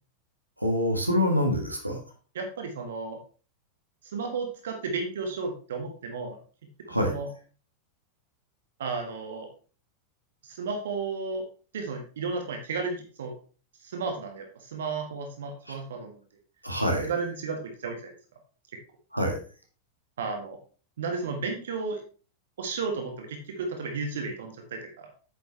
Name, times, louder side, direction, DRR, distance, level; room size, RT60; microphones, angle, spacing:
voice 1, 0.6-2.0 6.9-7.1 15.7-15.8 16.6-17.1 19.1-19.4, left 1 dB, 90° right, 2 dB, 1.8 m, -25 dB
voice 2, 2.3-3.2 4.0-6.4 6.9-7.3 8.8-9.5 10.4-11.4 11.7-13.3 13.8-16.2 17.0-18.1 20.2-20.6 21.0-22.0 22.6-25.1, right 4 dB, 60° right, 3 dB, 1.5 m, -33 dB
9.0 x 7.1 x 3.2 m, 0.38 s
figure-of-eight pair, 90°, 0 cm